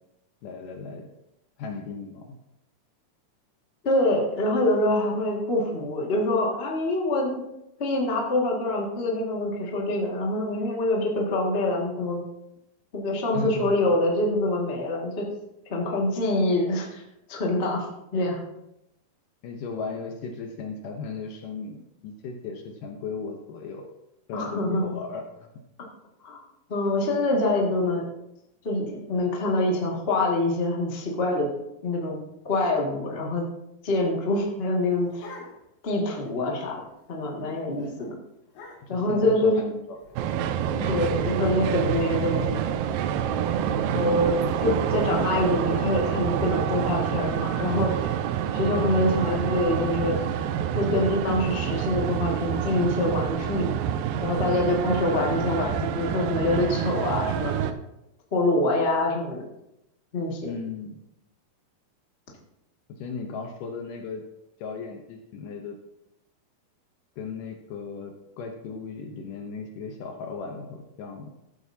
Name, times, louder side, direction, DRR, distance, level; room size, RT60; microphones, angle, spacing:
voice 1, 0.4-1.1 1.6-2.4 13.3-13.8 19.4-23.9 24.3-25.5 38.8-40.2 43.3-43.8 54.4-54.7 60.4-61.0 62.9-64.2 64.6-65.8 67.2-71.3, left 4 dB, 70° left, 4 dB, 2.2 m, -36 dB
voice 2, 3.8-7.5 7.8-12.2 12.9-15.3 15.6-17.0 17.3-17.9 18.1-18.4 24.3-25.0 26.2-26.4 26.7-28.1 28.6-31.5 31.8-32.2 32.4-33.5 33.8-35.3 35.8-36.8 37.1-38.1 38.9-39.7 40.7-42.6 43.7-48.1 48.5-50.1 50.7-53.7 54.2-57.7 58.3-59.4 60.1-60.5, left 2 dB, 25° left, -2 dB, 1.2 m, -25 dB
sound 1, 34.6-35.9 36.3-36.4 36.6-36.9 37.3-37.5 37.8-37.9 38.5-39.1 40.0-42.0, left 2 dB, 90° left, 4.3 m, -47 dB
sound 2, 40.2-57.7, right 9 dB, 80° right, 2.2 m, -27 dB
14.5 x 8.3 x 2.8 m, 0.85 s
omnidirectional pair, 4.3 m